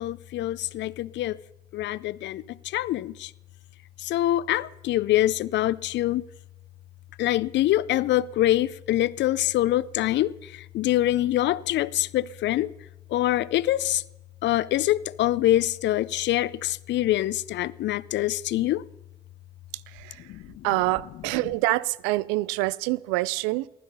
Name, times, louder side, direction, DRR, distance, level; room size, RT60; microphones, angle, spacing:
voice 1, 0.0-1.4 1.7-3.3 4.0-6.2 7.2-12.7 13.1-14.0 14.4-18.8 20.2-20.7, left 14 dB, 65° left, 0.5 m, -25 dB
voice 2, 19.9-20.3 20.6-23.7, right 20 dB, 80° right, 0.4 m, -26 dB
15.5 x 12.0 x 5.5 m
hypercardioid pair, 45°, 20 cm